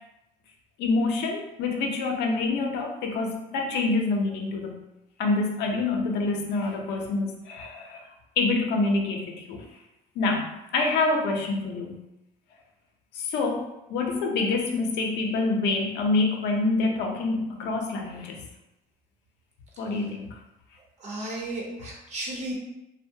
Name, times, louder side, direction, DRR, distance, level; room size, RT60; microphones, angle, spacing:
voice 1, 0.8-4.8 5.2-8.1 8.4-9.6 10.2-12.0 13.1-18.4 19.8-20.4, left 3 dB, 80° left, 1 dB, 0.5 m, -26 dB
voice 2, 21.0-22.5, right 2 dB, 40° right, -3 dB, 0.9 m, -34 dB
2.7 x 2.1 x 2.6 m, 0.91 s
cardioid pair, 110°, 17 cm